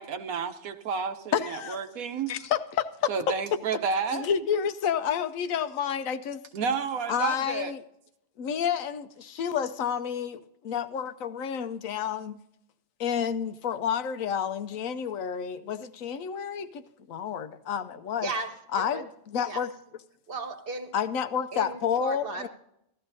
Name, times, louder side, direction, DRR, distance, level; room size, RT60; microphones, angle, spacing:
voice 1, 0.0-2.3 3.1-4.3 4.5-4.6 6.5-7.7, right 5 dB, 75° right, 1.3 m, -31 dB
voice 2, 1.3-1.8 2.3-3.1 4.1-6.4 7.1-7.8 8.4-12.4 13.0-16.8 17.1-18.3 18.7-19.7 20.9-22.5, left 8 dB, 70° left, 1.0 m, -30 dB
voice 3, 18.2-19.0 19.5-19.6 20.3-20.9 21.5-22.5, right 3 dB, 45° right, 1.3 m, -35 dB
16.5 x 13.0 x 2.7 m
omnidirectional pair, 1.5 m